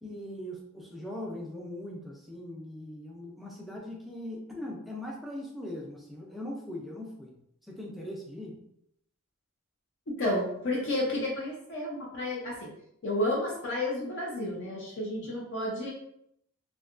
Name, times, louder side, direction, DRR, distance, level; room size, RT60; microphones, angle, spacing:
voice 1, 0.0-7.4 7.6-8.5 15.1-15.3, left 1 dB, ahead, -2 dB, 0.4 m, -40 dB
voice 2, 10.2-12.7 13.0-15.9, left 1 dB, 55° left, -3 dB, 0.5 m, -31 dB
2.7 x 2.3 x 2.4 m, 0.74 s
head